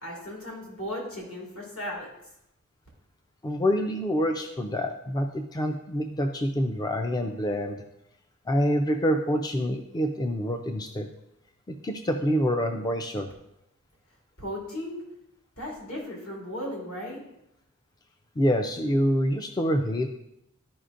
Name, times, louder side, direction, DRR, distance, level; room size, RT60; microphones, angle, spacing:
voice 1, 0.0-2.1 14.4-15.0 15.6-17.2, left 1 dB, 75° left, -3 dB, 3.0 m, -36 dB
voice 2, 3.4-7.8 8.5-11.1 11.7-13.3 18.4-20.1, equal, 20° left, 5 dB, 0.4 m, -26 dB
12.5 x 5.0 x 2.5 m, 0.84 s
head